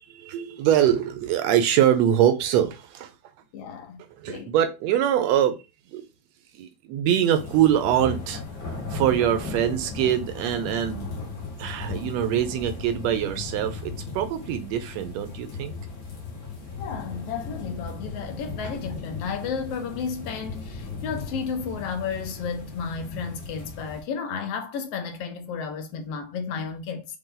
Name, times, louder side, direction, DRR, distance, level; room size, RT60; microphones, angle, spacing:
voice 1, 0.0-3.1 4.1-5.6 5.9-6.0 6.5-8.4 8.9-11.2 11.6-15.7, right 10 dB, 80° right, 1.6 m, -23 dB
voice 2, 3.5-4.0 4.3-4.5 16.8-27.1, left 6 dB, 75° left, 1.4 m, -33 dB
sound 1, 7.3-24.0, left 4 dB, 55° left, 1.0 m, -36 dB
5.3 x 2.7 x 3.7 m
omnidirectional pair, 3.4 m